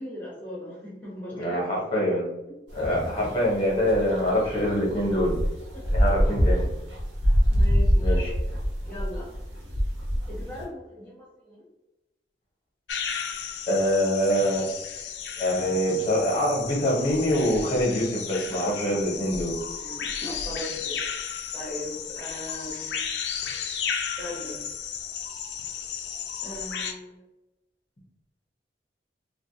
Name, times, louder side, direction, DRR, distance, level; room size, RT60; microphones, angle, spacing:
voice 1, 0.0-1.6 2.5-2.6 3.3-3.4 5.7-5.8 7.5-8.3 8.8-9.3 10.3-11.6 19.8-21.0 21.5-23.1 24.2-24.6 26.4-27.2, left 1 dB, 10° left, -8 dB, 1.1 m, -38 dB
voice 2, 1.3-2.3 2.7-5.4 5.9-6.6 8.0-8.3 13.7-14.7 15.4-19.5, equal, 30° left, -3 dB, 0.8 m, -24 dB
sound 1, 2.8-10.6, equal, 80° right, 0.9 m, -25 dB
sound 2, 12.9-26.9, left 7 dB, 80° left, 0.4 m, -34 dB
3.1 x 2.1 x 2.7 m, 0.98 s
head